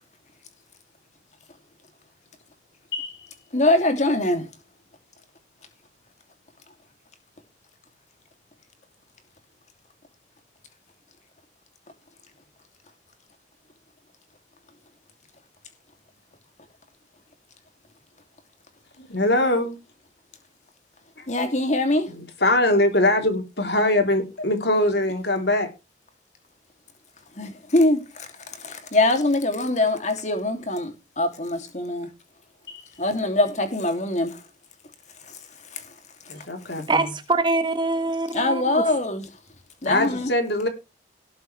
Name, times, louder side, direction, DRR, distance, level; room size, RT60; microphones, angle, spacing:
voice 1, 2.9-3.3 19.0-19.8 21.2-21.3 22.1-25.7 32.7-32.8 36.3-37.0 39.8-40.7, left 1 dB, 75° left, 3.6 m, -22 dB
voice 2, 3.5-4.5 21.3-22.1 27.4-28.3 28.6-32.1 33.0-34.4 35.7-35.8 38.3-39.2 39.8-40.3, left 2 dB, 40° left, 2.9 m, -23 dB
voice 3, 36.9-38.9, right 3 dB, 25° right, 1.8 m, -24 dB
18.5 x 7.9 x 3.4 m
head